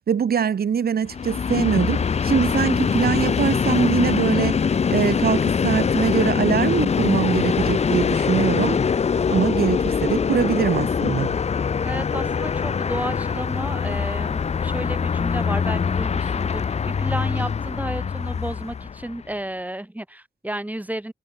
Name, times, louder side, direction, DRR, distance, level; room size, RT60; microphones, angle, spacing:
voice 1, 0.1-4.6 4.9-8.8 9.3-11.4, right 7 dB, 70° right, 0.6 m, -23 dB
Train, 1.1-19.2, left 6 dB, 40° left, 0.4 m, -23 dB
voice 2, 11.8-21.1, right 1 dB, 10° right, 2.5 m, -32 dB
wide cardioid pair, 120°, 16 cm